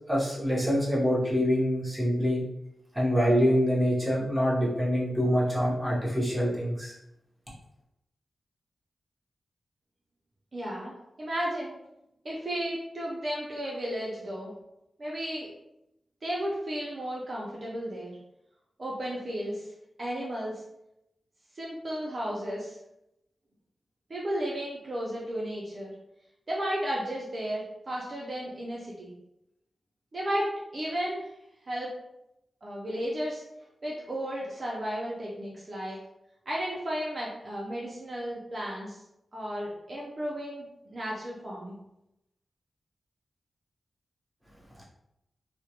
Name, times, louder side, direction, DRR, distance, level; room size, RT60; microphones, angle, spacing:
voice 1, 0.1-2.4 2.9-6.9, equal, 5° right, -8 dB, 0.8 m, -25 dB
voice 2, 10.5-11.7 12.2-14.5 15.0-15.5 16.2-18.2 18.8-19.7 20.0-20.5 21.5-22.8 24.1-25.9 26.5-29.1 30.1-31.3 31.7-31.9 32.6-33.4 33.8-36.0 36.5-39.0 39.3-40.6 40.9-41.8, equal, 40° right, -5 dB, 0.4 m, -33 dB
2.2 x 2.1 x 2.8 m, 0.84 s
wide cardioid pair, 150°, 0 cm